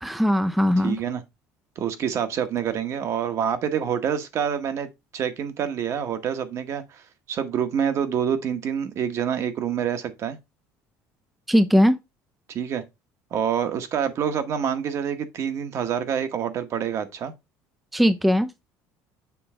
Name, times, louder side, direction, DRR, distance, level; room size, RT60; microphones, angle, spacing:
voice 1, 0.0-1.0 11.5-11.9 17.9-18.5, equal, ahead, 0.4 m, -19 dB
voice 2, 0.8-1.2 1.8-7.0 7.3-10.4 12.5-12.8 13.3-17.3, right 8 dB, 50° right, 1.0 m, -27 dB
7.0 x 3.2 x 4.3 m
cardioid pair, 115°, 6 cm